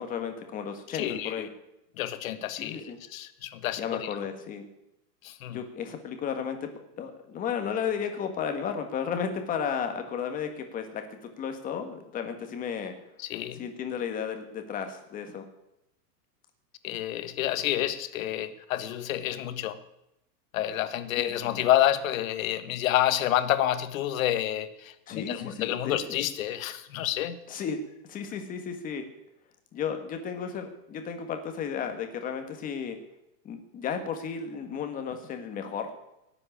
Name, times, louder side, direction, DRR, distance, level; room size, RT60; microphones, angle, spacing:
voice 1, 0.0-1.5 2.6-3.0 3.8-4.7 5.5-6.7 7.0-13.0 13.6-15.4 21.2-21.6 25.1-26.2 27.5-27.8 28.1-29.0 29.7-33.0 33.4-36.0, left 7 dB, 15° left, 6 dB, 1.5 m, -34 dB
voice 2, 0.9-1.5 2.0-4.1 5.2-5.6 13.2-13.6 16.8-19.8 20.5-27.4, left 12 dB, 55° left, 12 dB, 1.4 m, -29 dB
18.0 x 7.9 x 9.9 m, 0.87 s
supercardioid pair, 170°, 49 cm